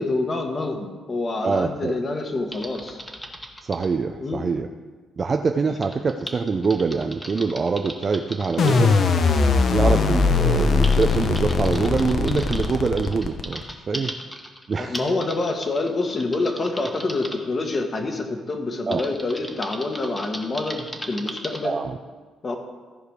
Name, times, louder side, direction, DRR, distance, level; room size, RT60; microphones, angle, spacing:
voice 1, 0.0-3.0 4.2-4.4 9.8-10.0 14.8-21.8 22.4-22.6, left 2 dB, 35° left, 4 dB, 1.3 m, -27 dB
voice 2, 1.4-2.0 3.6-4.7 5.2-9.0 9.7-14.1 14.7-15.0 18.9-19.0 21.6-22.0, right 4 dB, 40° right, 5 dB, 0.5 m, -24 dB
Typing, 2.5-3.9 5.8-8.8 9.8-9.9 10.4-17.4 18.9-21.7, equal, 10° left, 1.2 m, -37 dB
sound 1, 8.6-13.6, left 4 dB, 55° left, 0.8 m, -20 dB
14.5 x 5.0 x 4.9 m, 1.4 s
cardioid pair, 90°, 0 cm